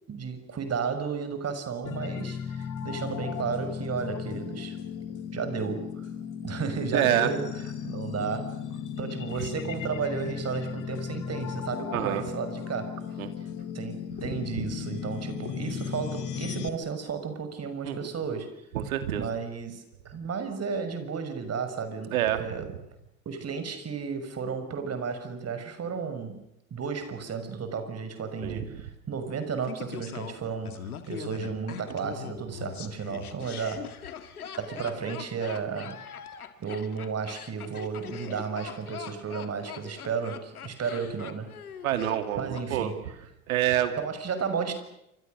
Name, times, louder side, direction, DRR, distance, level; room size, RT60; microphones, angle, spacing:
voice 1, 0.1-4.8 5.3-6.1 6.4-7.5 7.8-8.6 9.0-13.0 13.7-18.5 19.2-22.7 23.3-26.4 26.7-33.9 34.6-36.0 36.6-41.5 42.4-42.9 44.0-44.7, right 6 dB, 35° right, 9 dB, 5.9 m, -33 dB
sound 1, 1.8-16.7, left 8 dB, 45° left, 2.6 m, -36 dB
voice 2, 6.9-7.3 9.4-9.5 11.9-12.3 13.2-13.3 14.6-14.7 17.8-18.1 18.7-19.3 22.1-22.4 28.4-28.6 41.8-42.9 43.5-43.9, right 12 dB, 70° right, 8 dB, 2.9 m, -27 dB
Laughter, 29.6-42.7 42.9-43.0, left 8 dB, 85° left, 2.2 m, -41 dB
29.0 x 25.5 x 6.6 m, 0.84 s
figure-of-eight pair, 70°, 43 cm